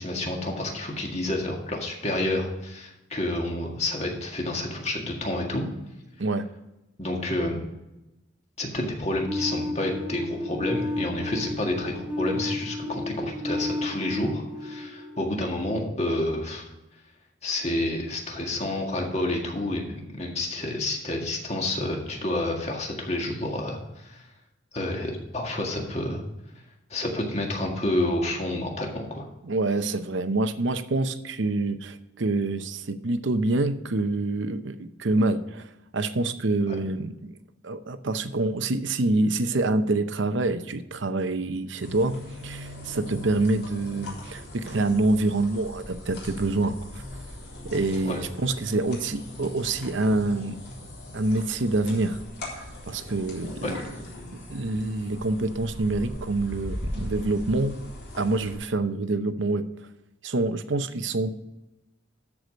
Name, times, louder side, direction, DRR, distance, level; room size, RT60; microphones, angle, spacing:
voice 1, 0.0-5.6 7.0-7.6 8.6-16.6 17.4-24.2 24.7-26.2 26.9-29.3 48.1-48.2 53.6-53.7, left 1 dB, 35° left, 1 dB, 1.8 m, -29 dB
sound 1, 9.2-16.0, left 2 dB, 10° right, 1.1 m, -33 dB
voice 2, 29.4-37.1 37.6-42.2 42.4-47.0 47.7-50.6 51.1-52.2 52.9-53.8 54.5-57.8 58.2-59.6 60.2-61.3, right 2 dB, 70° right, 11 dB, 0.7 m, -26 dB
sound 2, 41.8-58.6, left 1 dB, 55° left, 3.8 m, -39 dB
13.0 x 4.9 x 5.1 m, 0.95 s
head